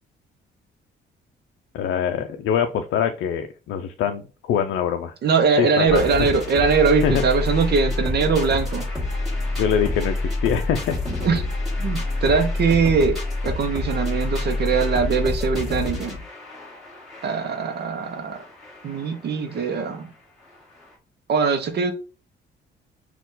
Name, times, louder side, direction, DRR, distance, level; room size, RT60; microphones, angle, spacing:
voice 1, 1.7-5.1 5.6-6.0 7.0-7.2 9.6-11.0, left 8 dB, 80° left, 0.4 m, -24 dB
voice 2, 5.2-8.9 11.2-11.4 11.8-13.2 13.4-16.2 17.2-18.4 18.8-20.1 21.3-21.9, right 5 dB, 55° right, 0.7 m, -21 dB
sound 1, 5.9-20.0 20.6-20.7 20.8-20.9, left 2 dB, ahead, 1.7 m, -28 dB
4.2 x 2.4 x 3.8 m
cardioid pair, 90°, 20 cm